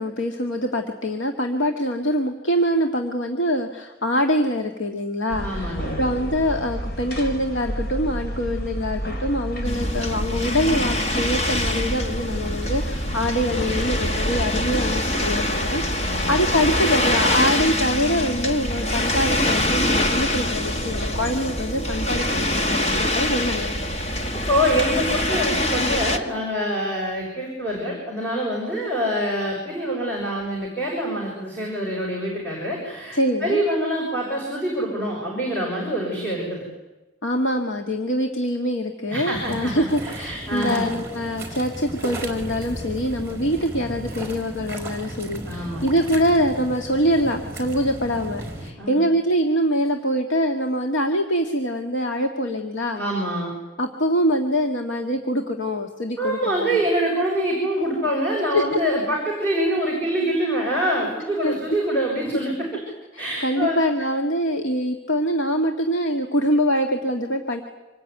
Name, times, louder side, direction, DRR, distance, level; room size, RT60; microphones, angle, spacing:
voice 1, 0.0-23.8 33.1-33.6 37.2-53.0 53.8-56.8 58.5-58.8 61.4-61.5 63.1-67.6, equal, 85° left, 4 dB, 2.0 m, -24 dB
sound 1, 5.3-16.8, equal, 50° left, 3.8 m, -31 dB
voice 2, 5.4-6.0 16.0-16.4 24.5-36.7 39.1-40.9 45.5-45.9 48.8-49.1 52.9-53.5 56.2-62.7 63.2-63.8, equal, 10° left, -3 dB, 6.5 m, -25 dB
sound 2, 9.6-26.2, left 1 dB, 35° left, 1.7 m, -24 dB
sound 3, 39.3-48.7, right 1 dB, 15° right, 4.1 m, -35 dB
26.5 x 20.0 x 9.4 m, 1.1 s
head